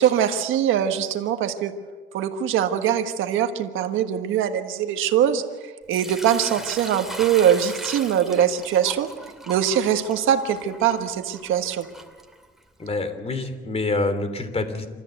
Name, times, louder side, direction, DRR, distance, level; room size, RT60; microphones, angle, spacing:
voice 1, 0.0-1.7 2.1-9.1 9.5-11.9, right 9 dB, 85° right, 6 dB, 1.5 m, -22 dB
Sink (filling or washing) / Liquid, 5.9-12.8, right 1 dB, ahead, 2.6 m, -39 dB
voice 2, 12.8-14.9, left 2 dB, 30° left, 9 dB, 3.1 m, -26 dB
27.5 x 13.5 x 8.1 m, 1.4 s
cardioid pair, 90°, 20 cm